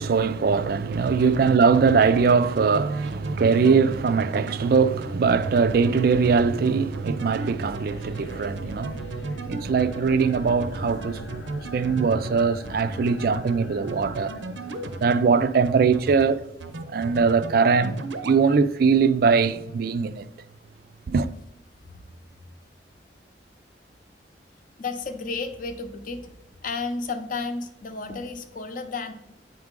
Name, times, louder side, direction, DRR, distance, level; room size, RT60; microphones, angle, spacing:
voice 1, 0.0-11.4 11.7-14.4 15.0-16.4 16.9-18.0 18.2-20.3 21.1-21.3, right 5 dB, 55° right, 0.3 m, -21 dB
sound 1, 0.9-15.3 15.6-16.3 16.6-17.5 17.8-18.4, right 3 dB, 90° right, 0.7 m, -35 dB
sound 2, 4.9-15.4, equal, 80° left, 0.8 m, -42 dB
voice 2, 21.8-22.2 24.8-26.3 26.6-29.1, left 4 dB, 45° left, 0.7 m, -32 dB
8.8 x 4.7 x 3.7 m
head